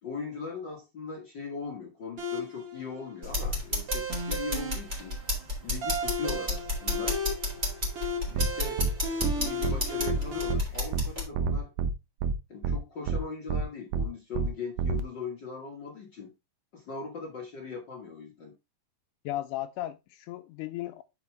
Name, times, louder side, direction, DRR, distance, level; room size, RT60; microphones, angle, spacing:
voice 1, 0.0-5.1 5.6-7.2 8.3-8.8 9.4-11.7 12.5-16.3 16.7-18.5, left 4 dB, 50° left, 1.3 m, -39 dB
sound 1, 2.2-10.5, left 1 dB, 45° right, 2.7 m, -35 dB
sound 2, 3.2-11.3, left 1 dB, 15° right, 4.0 m, -32 dB
sound 3, 8.4-8.5 8.8-8.9 9.2-9.3 9.6-9.8 10.1-10.2 10.5-10.6 10.9-11.1 11.4-11.9 12.2-12.3 12.6-12.8 13.1-13.2 13.5-13.6 13.9-14.1 14.4-14.5 14.8-15.0, right 5 dB, 75° right, 2.2 m, -27 dB
voice 2, 19.3-21.0, left 14 dB, 85° left, 1.8 m, -35 dB
8.0 x 6.0 x 3.2 m
omnidirectional pair, 4.1 m